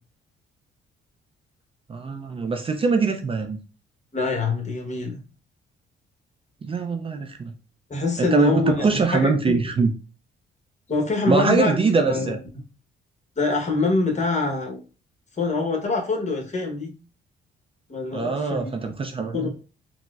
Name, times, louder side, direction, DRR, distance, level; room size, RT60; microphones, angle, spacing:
voice 1, 1.9-3.6 6.6-7.5 8.2-9.9 11.3-12.4 18.1-19.5, right 4 dB, 30° right, 5 dB, 0.4 m, -23 dB
voice 2, 4.1-5.2 7.9-9.6 10.9-11.8 12.1-12.4 13.4-14.8 15.4-17.0 17.9-18.9 19.3-19.5, left 3 dB, 35° left, 1 dB, 1.0 m, -25 dB
4.3 x 2.0 x 2.3 m, 0.36 s
cardioid pair, 90°, 20 cm